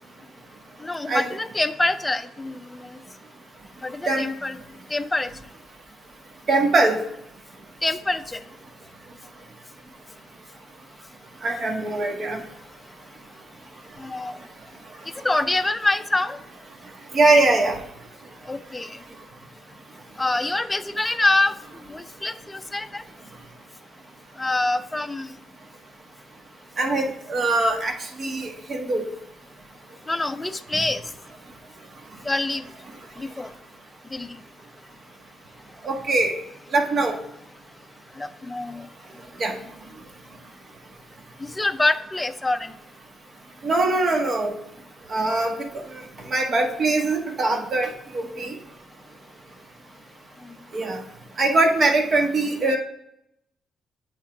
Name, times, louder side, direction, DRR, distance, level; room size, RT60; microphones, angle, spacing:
voice 1, 0.8-3.0 3.8-4.6 4.9-5.3 7.8-8.4 14.0-14.4 15.2-16.4 18.5-19.0 20.2-21.6 21.8-23.0 24.4-25.3 30.1-31.0 32.2-32.6 33.2-33.5 34.1-34.4 38.2-38.9 41.4-42.7, left 2 dB, 15° left, 9 dB, 0.5 m, -25 dB
voice 2, 6.5-7.0 11.4-12.4 17.1-17.8 26.8-27.9 28.2-29.1 30.7-30.8 35.8-36.3 36.7-37.2 39.4-39.6 43.6-44.5 45.1-48.5 50.7-51.0 51.4-52.8, right 2 dB, 50° right, 2 dB, 1.6 m, -22 dB
8.4 x 3.7 x 4.6 m, 0.78 s
cardioid pair, 90°, 0 cm